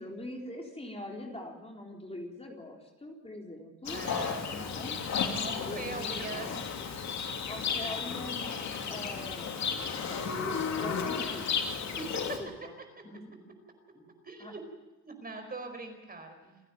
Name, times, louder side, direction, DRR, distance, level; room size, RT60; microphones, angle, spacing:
voice 1, 0.0-4.0 4.5-5.0 5.2-6.7 7.5-9.5 10.1-11.6 12.4-12.7 13.0-13.4 13.9-14.1 14.4-14.5 16.4-16.6, left 1 dB, 20° left, 0 dB, 4.1 m, -43 dB
Livestock farm animals working animals, 3.9-12.4, left 6 dB, 65° left, 3.0 m, -33 dB
voice 2, 3.9-4.5 5.4-6.5 12.0-12.4 14.2-14.6 15.0-16.4, right 3 dB, 30° right, 6 dB, 4.8 m, -41 dB
28.5 x 9.9 x 9.2 m, 1.1 s
cardioid pair, 90°, 30 cm